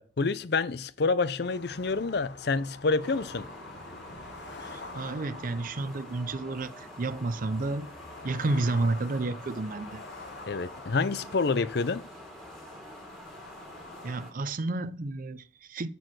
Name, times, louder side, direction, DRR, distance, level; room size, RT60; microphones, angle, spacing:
voice 1, 0.0-3.5 10.5-12.0, left 4 dB, 65° left, 0.6 m, -28 dB
sound 1, 1.4-14.2, left 3 dB, 90° left, 1.3 m, -47 dB
sound 2, 3.0-14.3, equal, ahead, 2.4 m, -47 dB
voice 2, 4.6-7.9 8.2-10.0 14.0-15.9, right 2 dB, 50° right, 0.6 m, -31 dB
14.0 x 4.7 x 6.1 m
head